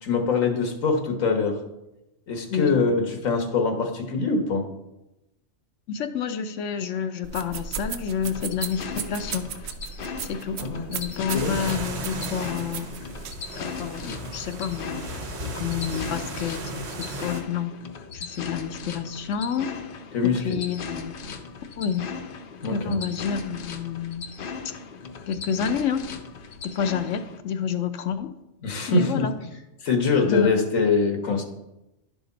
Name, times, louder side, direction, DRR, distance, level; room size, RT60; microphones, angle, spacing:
voice 1, 0.0-1.6 2.3-4.6 10.6-11.5 20.1-20.4 22.6-23.0 28.6-29.3 29.8-31.4, left 4 dB, 90° left, 4 dB, 1.5 m, -23 dB
voice 2, 5.9-9.5 10.2-10.6 10.9-12.9 13.6-15.1 15.6-17.7 18.1-19.7 20.4-21.1 21.8-22.1 22.7-24.3 25.3-26.0 26.6-28.3 28.9-29.3 30.2-30.6, left 7 dB, 75° left, 9 dB, 0.9 m, -29 dB
sound 1, 7.2-13.5, right 7 dB, 85° right, 1.0 m, -37 dB
sound 2, 8.2-27.4, left 5 dB, 55° left, 0.7 m, -38 dB
sound 3, 11.3-17.4, right 2 dB, 60° right, 1.1 m, -35 dB
11.0 x 5.0 x 3.9 m, 0.93 s
omnidirectional pair, 1.3 m